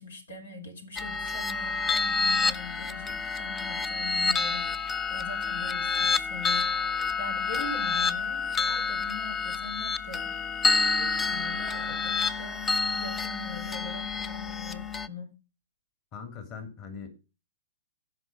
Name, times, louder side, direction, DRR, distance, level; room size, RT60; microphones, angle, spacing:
voice 1, 0.0-10.3 10.9-15.3, left 2 dB, 80° left, 3.2 m, -42 dB
sound 1, 1.0-15.1, left 4 dB, 15° left, 0.6 m, -28 dB
voice 2, 16.1-17.1, left 6 dB, 35° left, 2.6 m, -41 dB
16.0 x 5.4 x 4.8 m
hypercardioid pair, 125°, 0 cm